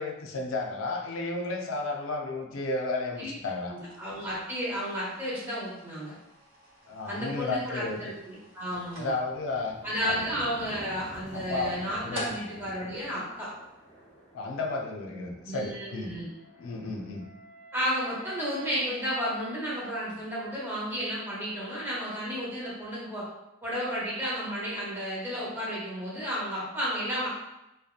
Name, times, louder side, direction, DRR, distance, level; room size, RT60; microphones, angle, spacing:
voice 1, 0.0-3.7 6.9-8.0 9.0-9.8 10.0-10.2 11.5-11.7 12.0-12.2 14.3-16.1 16.6-17.2, left 3 dB, 90° left, 1 dB, 0.4 m, -32 dB
voice 2, 3.7-6.1 7.1-9.1 9.8-13.5 15.5-16.3 17.7-23.3 23.6-27.3, equal, 10° right, -7 dB, 0.7 m, -32 dB
sound 1, 3.7-14.0, right 1 dB, 80° right, 0.9 m, -49 dB
sound 2, 6.9-7.0 7.4-18.2, equal, 35° left, 0.8 m, -50 dB
Wind instrument woodwind instrument, 16.3-20.5, right 1 dB, 50° right, 0.9 m, -52 dB
2.7 x 2.1 x 2.4 m, 0.91 s
head